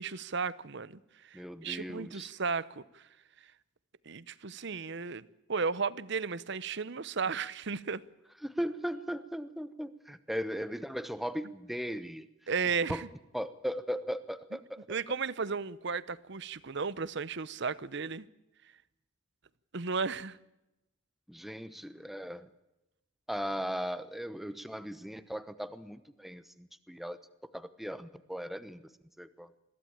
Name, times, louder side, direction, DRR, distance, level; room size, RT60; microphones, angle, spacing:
voice 1, 0.0-3.0 4.1-8.0 12.5-13.1 14.9-18.3 19.7-20.4, right 5 dB, 60° right, 0.8 m, -34 dB
voice 2, 1.3-2.3 8.4-12.3 12.9-13.0 13.3-15.2 21.3-22.5 23.3-27.2 27.5-28.9 29.2-29.5, equal, ahead, 0.9 m, -38 dB
22.0 x 16.0 x 8.8 m
head